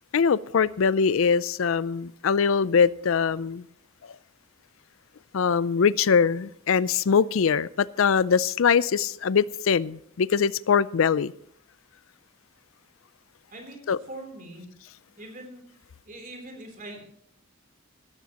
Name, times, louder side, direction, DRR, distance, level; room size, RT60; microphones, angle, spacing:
voice 1, 0.1-3.7 5.3-11.3 13.9-14.0, left 6 dB, 70° left, 0.4 m, -22 dB
voice 2, 13.5-14.7 15.2-15.6 16.1-17.0, right 1 dB, 40° right, 3.6 m, -42 dB
16.5 x 13.5 x 3.0 m
head